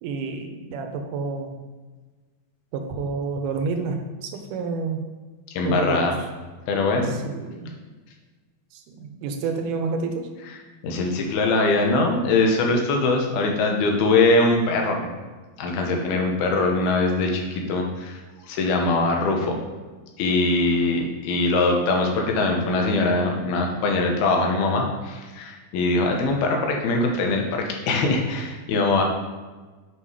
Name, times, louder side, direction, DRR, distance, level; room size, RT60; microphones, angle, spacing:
voice 1, 0.0-1.6 2.7-5.1 5.6-6.1 7.0-7.7 8.7-10.3, right 4 dB, 75° right, 4 dB, 2.2 m, -29 dB
voice 2, 5.5-6.2 6.7-7.2 10.8-15.1 15.6-18.2 18.5-19.5 20.2-29.0, left 2 dB, 90° left, 2 dB, 3.0 m, -22 dB
7.6 x 5.6 x 4.9 m, 1.3 s
omnidirectional pair, 4.3 m